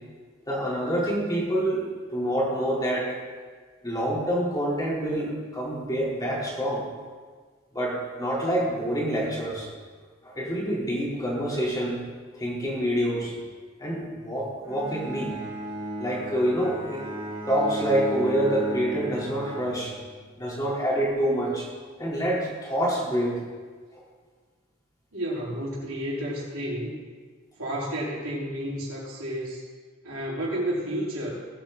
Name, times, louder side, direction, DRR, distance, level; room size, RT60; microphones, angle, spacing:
voice 1, 0.5-1.8 2.1-3.1 3.8-6.9 7.7-9.7 10.2-12.0 12.3-13.3 13.8-15.3 16.0-17.0 17.5-19.9 20.4-21.7 22.0-23.4 23.9-24.0, equal, 20° left, -5 dB, 3.7 m, -27 dB
Bowed string instrument, 14.6-20.4, right 1 dB, 25° right, 3.6 m, -35 dB
voice 2, 25.1-27.0 27.6-29.6 30.0-31.3, equal, 85° right, -6 dB, 4.5 m, -31 dB
18.5 x 8.7 x 4.1 m, 1.5 s
head